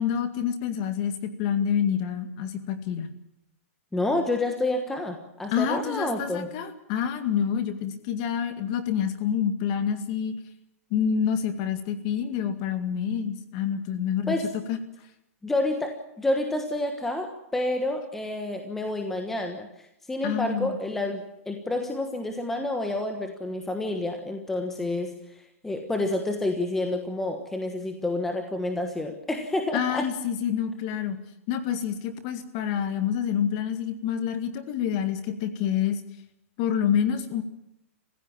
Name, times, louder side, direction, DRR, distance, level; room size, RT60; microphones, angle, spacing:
voice 1, 0.0-3.1 5.5-10.3 10.9-14.3 14.7-14.8 20.2-20.7 29.7-31.2 31.5-36.0 36.6-37.4, left 8 dB, 30° left, 9 dB, 2.1 m, -27 dB
voice 2, 3.9-6.5 14.3-14.5 15.4-30.1, left 2 dB, 5° left, 4 dB, 1.3 m, -29 dB
27.5 x 16.0 x 8.8 m, 0.80 s
hypercardioid pair, 175°, 8 cm